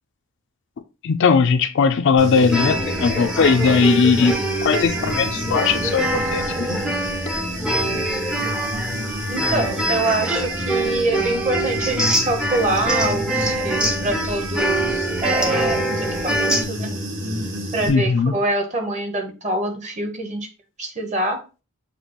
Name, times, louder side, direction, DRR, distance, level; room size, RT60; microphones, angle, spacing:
voice 1, 1.0-4.4 4.6-6.8 17.9-18.3, left 5 dB, 55° left, 0.4 m, -18 dB
Human voice / Buzz, 2.2-17.9, equal, 60° right, 1.3 m, -30 dB
sound 1, 2.4-16.6, right 1 dB, 5° right, 0.5 m, -24 dB
voice 2, 9.3-16.9 17.7-20.5 20.8-21.4, right 2 dB, 35° right, 0.9 m, -25 dB
6.8 x 2.3 x 2.9 m
head